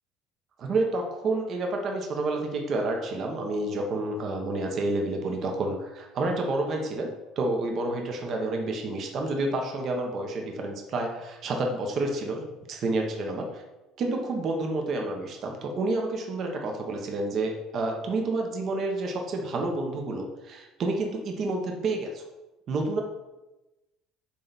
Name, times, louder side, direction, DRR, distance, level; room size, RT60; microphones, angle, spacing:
voice 1, 0.6-13.6 14.0-22.2 22.7-23.0, right 2 dB, 45° right, 2 dB, 1.1 m, -29 dB
8.3 x 3.4 x 4.1 m, 1.0 s
cardioid pair, 120°, 0 cm